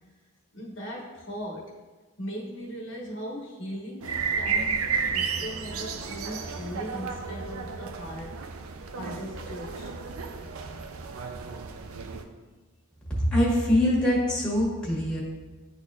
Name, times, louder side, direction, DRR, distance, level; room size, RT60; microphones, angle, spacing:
voice 1, 0.5-1.7 2.2-8.4 8.9-9.9, equal, 60° left, -1 dB, 1.2 m, -38 dB
sound 1, 4.0-12.2, right 5 dB, 85° right, 0.5 m, -32 dB
voice 2, 13.1-15.2, left 1 dB, 5° left, -5 dB, 1.5 m, -23 dB
11.0 x 4.1 x 2.4 m, 1.3 s
head